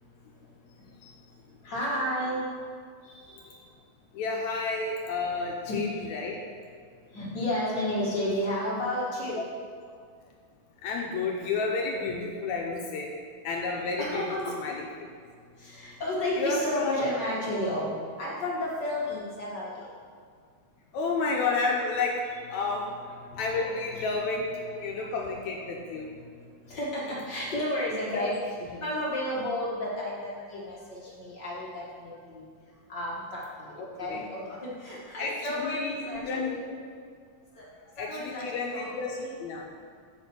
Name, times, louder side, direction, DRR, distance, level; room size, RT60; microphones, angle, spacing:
voice 1, 1.6-2.5 5.7-5.8 7.1-9.4 14.0-14.5 15.6-17.9 18.2-19.9 23.3-23.6 24.3-24.5 26.7-28.4 28.8-32.4 32.9-33.4 33.8-36.6 38.0-39.3, left 1 dB, 60° left, -6 dB, 1.1 m, -32 dB
voice 2, 3.0-3.7 4.1-6.4 10.8-13.1 13.4-14.9 16.4-17.1 20.9-26.1 28.1-28.3 28.7-28.8 33.8-34.2 35.2-36.5 38.0-39.6, left 3 dB, 75° left, 0 dB, 1.8 m, -31 dB
6.8 x 5.9 x 6.9 m, 2.1 s
omnidirectional pair, 3.9 m